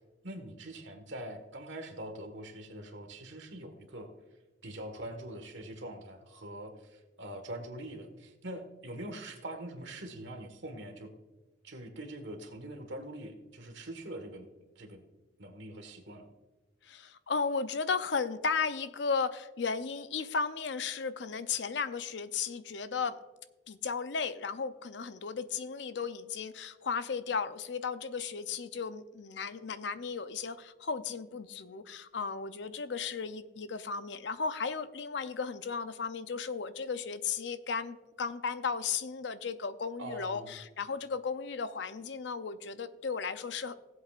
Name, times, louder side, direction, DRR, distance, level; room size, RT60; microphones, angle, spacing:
voice 1, 0.2-4.1 4.6-11.1 11.6-14.5 14.7-15.0 15.4-16.2 40.0-40.5, right 1 dB, 80° right, 6 dB, 1.5 m, -43 dB
voice 2, 16.8-23.2 23.7-43.8, left 5 dB, 70° left, 12 dB, 0.6 m, -35 dB
18.0 x 8.0 x 2.5 m, 1.1 s
head